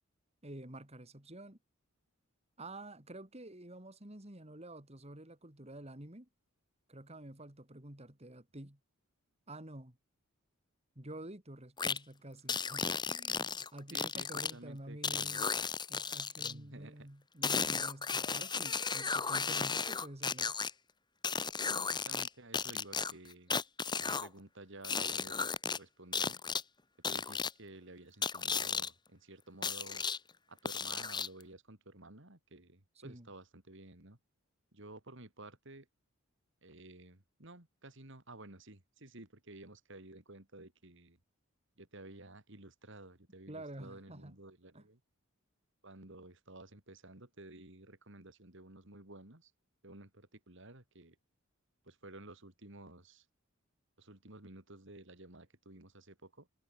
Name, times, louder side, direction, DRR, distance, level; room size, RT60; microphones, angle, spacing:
voice 1, 0.4-1.6 2.6-6.3 6.9-8.8 9.5-10.0 11.0-15.5 15.9-20.5 33.0-33.3 43.5-44.3 44.7-44.8, right 1 dB, 30° right, 2.7 m, -49 dB
sound 1, 11.8-12.0 12.5-14.5 15.0-16.5 17.4-20.7 21.2-22.3 22.5-24.3 24.8-25.8 26.1-26.6 27.0-27.5 28.2-28.9 29.6-30.2 30.6-31.4, left 5 dB, 20° left, 1.7 m, -34 dB
voice 2, 13.9-15.4 16.4-17.1 21.6-23.5 24.0-26.4 27.1-30.1 30.5-34.2 34.7-35.9 36.6-41.2 41.8-45.0 45.8-49.5 49.8-51.2 51.8-53.3 54.0-56.5, right 2 dB, 60° right, 3.4 m, -53 dB
head